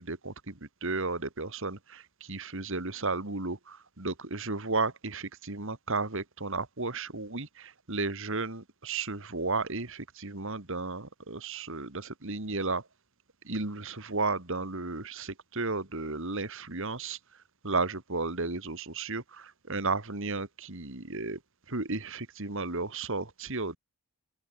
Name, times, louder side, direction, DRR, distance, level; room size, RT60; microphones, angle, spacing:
voice 1, 0.0-12.9 13.4-17.2 17.6-21.4 21.7-23.8, right 3 dB, 60° right, 2.5 m, -33 dB
head